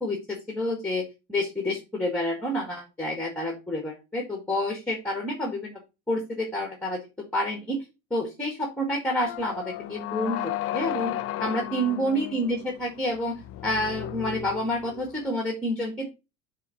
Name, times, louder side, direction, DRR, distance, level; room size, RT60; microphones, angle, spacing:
voice 1, 0.0-5.8 6.1-7.0 7.3-7.8 8.1-11.1 11.4-13.3 13.6-16.1, left 1 dB, 5° left, 2 dB, 1.7 m, -29 dB
sound 1, 9.2-15.2, left 13 dB, 40° left, 0.5 m, -34 dB
8.2 x 3.7 x 5.7 m, 0.27 s
cardioid pair, 150°, 35 cm